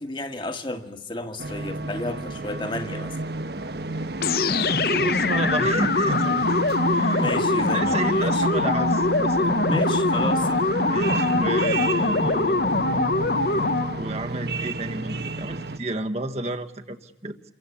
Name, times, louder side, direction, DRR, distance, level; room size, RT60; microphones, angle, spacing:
voice 1, 0.0-3.2 7.1-8.5 9.6-10.7, left 2 dB, 25° left, 7 dB, 1.7 m, -32 dB
sound 1, 1.4-15.8, right 2 dB, 65° right, 1.4 m, -30 dB
sound 2, 4.2-14.1, left 3 dB, 55° left, 1.0 m, -23 dB
voice 2, 4.9-6.6 6.9-7.3 7.7-9.5 10.9-12.7 14.0-17.4, right 2 dB, 35° right, 6 dB, 1.4 m, -31 dB
28.0 x 23.5 x 8.6 m, 0.94 s
head